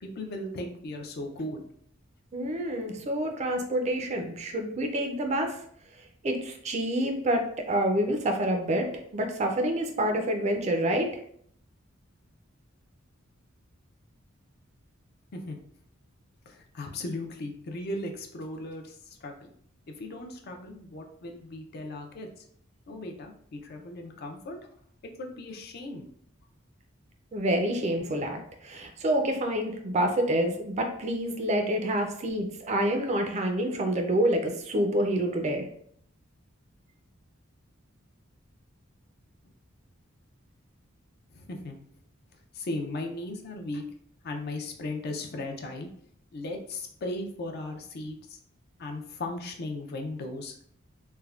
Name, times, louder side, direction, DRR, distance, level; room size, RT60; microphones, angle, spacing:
voice 1, 0.0-1.6 15.3-15.6 16.5-19.5 20.0-22.5 22.9-24.6 25.2-26.1 41.3-41.8 42.5-43.8 44.2-45.9 46.3-48.4 48.8-50.6, left 2 dB, 50° left, 3 dB, 0.4 m, -37 dB
voice 2, 2.3-5.6 6.2-8.9 9.1-11.1 27.3-35.7, right 1 dB, 35° right, 4 dB, 0.4 m, -27 dB
3.3 x 2.1 x 2.3 m, 0.64 s
head